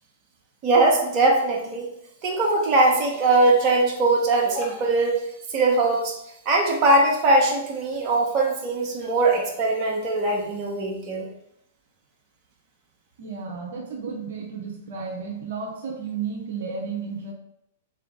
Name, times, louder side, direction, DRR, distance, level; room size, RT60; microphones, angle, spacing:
voice 1, 0.6-1.9 2.2-5.2 5.5-6.2 6.4-11.3, right 2 dB, 35° right, -1 dB, 1.2 m, -21 dB
voice 2, 13.2-17.3, right 5 dB, 65° right, -1 dB, 0.8 m, -33 dB
4.0 x 3.3 x 3.8 m, 0.78 s
hypercardioid pair, 110°, 0 cm